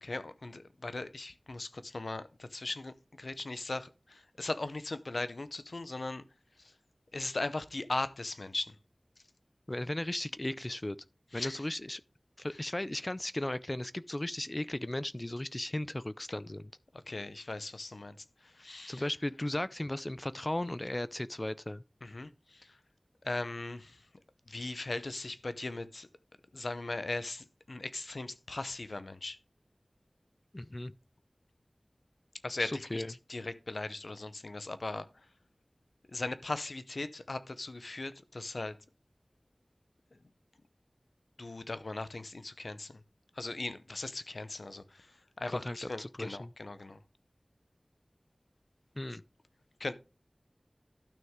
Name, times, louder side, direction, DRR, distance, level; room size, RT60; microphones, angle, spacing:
voice 1, 0.0-6.2 7.1-8.8 11.3-11.5 17.1-18.2 18.4-19.0 22.0-22.8 23.2-24.0 24.5-26.1 26.5-29.4 32.4-33.0 33.3-35.1 36.1-38.8 41.4-42.9 43.4-45.1 45.4-47.0 49.8-49.9, left 2 dB, 80° left, 0.7 m, -38 dB
voice 2, 9.7-11.0 11.3-12.0 12.4-16.7 18.9-21.8 30.5-30.9 32.6-33.1 45.5-46.5 49.0-49.2, left 1 dB, 30° left, 0.4 m, -36 dB
12.0 x 6.2 x 3.7 m
wide cardioid pair, 55°, 0 cm